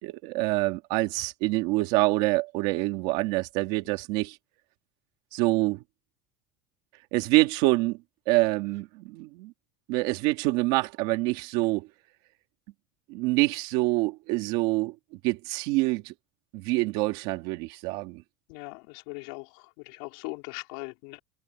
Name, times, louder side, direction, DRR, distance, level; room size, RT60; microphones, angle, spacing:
voice 1, 0.0-4.4 5.3-5.8 7.1-8.0 8.3-9.5 9.9-11.9 13.1-14.9 15.2-16.1 16.5-18.2, right 21 dB, 55° right, 2.6 m, -26 dB
voice 2, 18.5-21.2, left 29 dB, 60° left, 5.4 m, -40 dB
cardioid pair, 175°, 12 cm